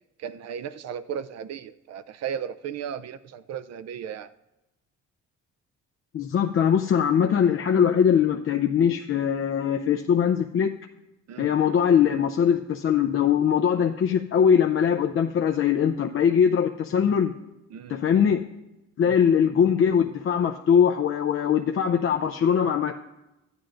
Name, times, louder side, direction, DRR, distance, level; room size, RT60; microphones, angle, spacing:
voice 1, 0.2-4.3 11.3-11.5 17.7-18.0 19.0-19.2, right 8 dB, 60° right, 13 dB, 0.5 m, -35 dB
voice 2, 6.1-10.8 11.4-17.3 17.9-18.5 19.0-22.9, left 8 dB, 45° left, 4 dB, 0.5 m, -21 dB
14.0 x 9.6 x 2.6 m, 0.94 s
cardioid pair, 90°, 30 cm